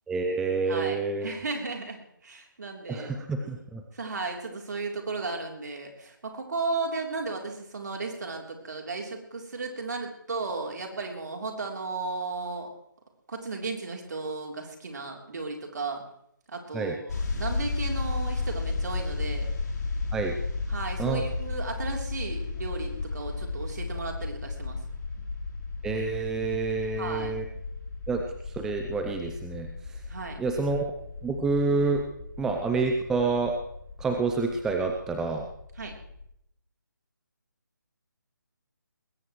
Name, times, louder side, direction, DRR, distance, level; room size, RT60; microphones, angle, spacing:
voice 1, 0.1-1.3 2.9-3.8 16.7-16.9 20.1-20.3 21.0-21.3 25.8-27.4 28.1-28.2 28.6-29.7 30.4-30.9 31.2-32.0 32.4-33.5 34.0-35.4, right 4 dB, 5° right, 3 dB, 0.5 m, -28 dB
voice 2, 0.7-3.2 3.9-12.7 13.3-16.0 16.5-19.5 20.7-24.8 27.0-27.3 30.1-30.4 35.8-35.9, right 3 dB, 55° right, 2 dB, 3.5 m, -35 dB
sound 1, 17.1-36.3, left 3 dB, 55° left, 2.7 m, -34 dB
20.5 x 17.0 x 3.2 m, 0.74 s
figure-of-eight pair, 155°, 11 cm